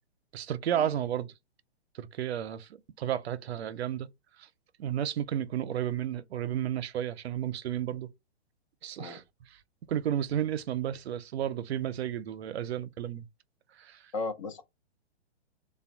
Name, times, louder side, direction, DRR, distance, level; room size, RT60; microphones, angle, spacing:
voice 1, 0.3-1.3 2.0-2.7 3.0-4.1 4.8-8.1 8.8-9.2 9.9-13.3 13.8-14.0, right 10 dB, 70° right, 0.6 m, -32 dB
voice 2, 14.1-14.6, left 3 dB, 30° left, 0.4 m, -35 dB
3.3 x 2.2 x 4.3 m
hypercardioid pair, 145°, 33 cm